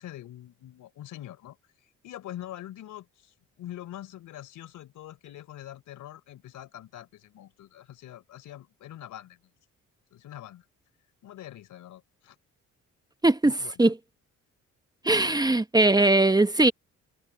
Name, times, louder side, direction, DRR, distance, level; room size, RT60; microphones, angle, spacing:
voice 1, 0.0-1.6 2.0-9.4 10.1-10.7 11.2-12.4 13.4-13.9, left 12 dB, 80° left, 4.0 m, -44 dB
voice 2, 13.2-13.9 15.0-16.7, right 2 dB, 15° right, 1.0 m, -20 dB
cardioid pair, 90°, 30 cm